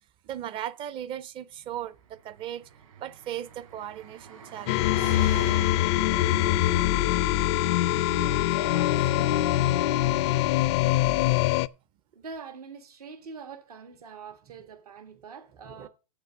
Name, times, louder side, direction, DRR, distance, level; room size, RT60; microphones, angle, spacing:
voice 1, 0.2-2.7 3.0-5.2 15.6-15.9, right 11 dB, 25° right, 0.5 m, -37 dB
Car passing by, 2.1-8.1, right 6 dB, 60° right, 4.1 m, -44 dB
sound 1, 4.7-11.7, left 16 dB, 45° left, 0.4 m, -24 dB
Wind instrument woodwind instrument, 5.9-10.6, left 3 dB, 85° left, 0.7 m, -35 dB
voice 2, 8.0-9.5 12.1-15.9, right 5 dB, 80° right, 2.0 m, -44 dB
8.1 x 7.3 x 6.0 m
hypercardioid pair, 125°, 19 cm